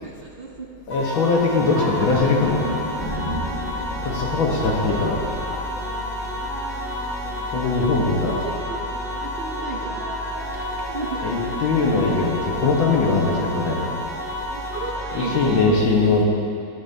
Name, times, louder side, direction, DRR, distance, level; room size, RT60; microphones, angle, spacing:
voice 1, 0.0-0.7 8.0-8.8 9.2-10.0 10.9-11.2 14.5-16.1, right 4 dB, 65° right, -2 dB, 0.5 m, -33 dB
sound 1, 0.9-15.7, equal, 90° left, 4.0 m, -31 dB
voice 2, 0.9-2.8 4.0-5.2 7.5-8.4 11.2-14.0 15.1-16.2, left 3 dB, 75° left, -2 dB, 2.2 m, -21 dB
sound 2, 1.7-7.9 8.5-12.4, right 2 dB, 45° right, 1.6 m, -39 dB
sound 3, 2.1-6.3, left 1 dB, 20° left, 1.4 m, -33 dB
12.5 x 12.5 x 2.8 m, 2.4 s
omnidirectional pair, 2.3 m